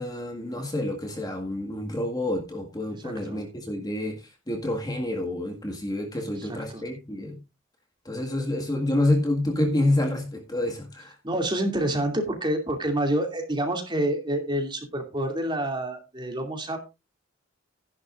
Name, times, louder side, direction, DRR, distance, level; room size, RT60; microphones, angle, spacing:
voice 1, 0.0-4.2 4.5-7.4 8.1-11.2, left 1 dB, 20° left, 1.8 m, -28 dB
voice 2, 3.0-3.4 6.4-6.8 11.2-16.9, right 1 dB, 20° right, 2.6 m, -28 dB
14.0 x 11.0 x 2.5 m
head